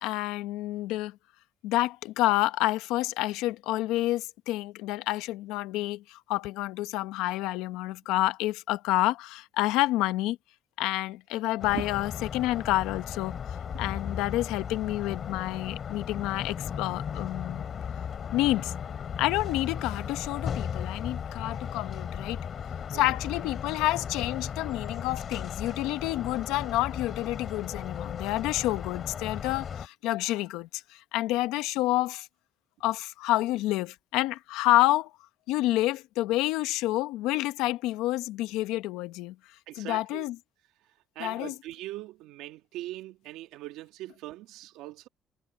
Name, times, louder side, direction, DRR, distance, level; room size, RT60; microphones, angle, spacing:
voice 1, 0.0-1.1 1.6-10.4 10.8-13.4 13.8-17.7 18.3-18.7 19.2-22.4 22.9-32.3 32.8-35.1 35.5-39.3 39.8-40.4 41.2-41.5, left 17 dB, 85° left, 1.1 m, -29 dB
sound 1, 11.6-29.9, left 7 dB, 55° left, 3.2 m, -36 dB
voice 2, 39.7-40.3 41.2-45.1, right 16 dB, 85° right, 2.1 m, -41 dB
supercardioid pair, 65°, 0 cm